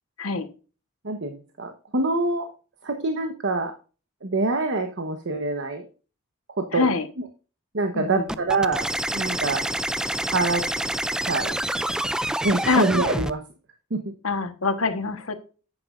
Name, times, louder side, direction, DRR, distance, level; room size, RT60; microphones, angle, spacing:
voice 1, 0.2-0.5 6.7-7.1 7.9-8.3 12.6-12.9 14.2-15.3, left 4 dB, 90° left, 8 dB, 1.3 m, -24 dB
voice 2, 1.0-2.5 2.8-3.7 4.2-5.8 6.6-6.9 7.7-8.9 9.1-9.7 10.3-10.7 11.2-11.6 12.4-13.4 13.9-14.1, right 3 dB, 60° right, 5 dB, 1.1 m, -25 dB
sound 1, 8.3-13.3, right 1 dB, 5° right, 0.3 m, -27 dB
10.0 x 8.5 x 2.5 m, 0.35 s
head